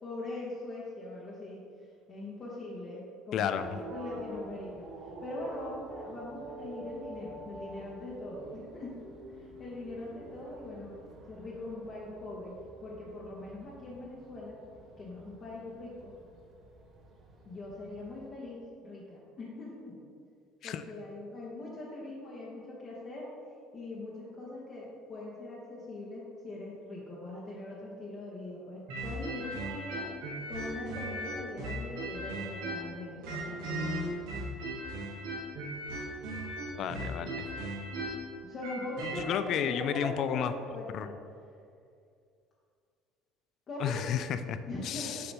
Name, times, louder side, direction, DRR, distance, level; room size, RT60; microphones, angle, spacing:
voice 1, 0.0-1.6 2.1-9.0 9.6-10.9 11.3-12.5 12.8-14.6 15.0-16.1 17.4-20.0 20.6-23.3 23.7-30.1 30.5-33.9 38.4-41.1 43.7-44.0 44.7-45.3, left 2 dB, 40° left, -5 dB, 1.0 m, -41 dB
voice 2, 3.3-3.8 20.6-20.8 36.8-37.5 39.3-40.5 40.9-41.1 43.8-44.6 44.8-45.2, left 9 dB, 55° left, 11 dB, 0.3 m, -32 dB
sound 1, 3.6-18.3, right 2 dB, 45° right, 0.8 m, -48 dB
sound 2, 28.9-32.9 33.2-39.2, right 1 dB, 85° right, 1.4 m, -37 dB
6.7 x 3.0 x 5.2 m, 2.4 s
cardioid pair, 115°, 0 cm